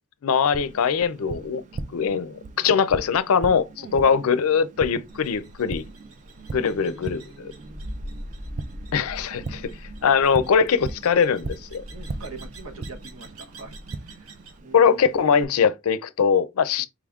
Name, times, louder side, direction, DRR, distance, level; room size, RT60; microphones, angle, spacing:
voice 1, 0.2-1.6 1.9-5.8 6.5-7.5 8.9-9.6 10.0-11.8 14.7-16.9, left 6 dB, 75° left, 0.4 m, -21 dB
Tap, 0.5-15.5, right 3 dB, 35° right, 0.3 m, -39 dB
voice 2, 3.8-4.1 6.3-7.8 11.9-15.0 16.8-16.9, right 3 dB, 65° right, 0.9 m, -44 dB
sound 1, 5.1-14.6, equal, 80° right, 1.2 m, -42 dB
4.8 x 3.5 x 2.3 m
head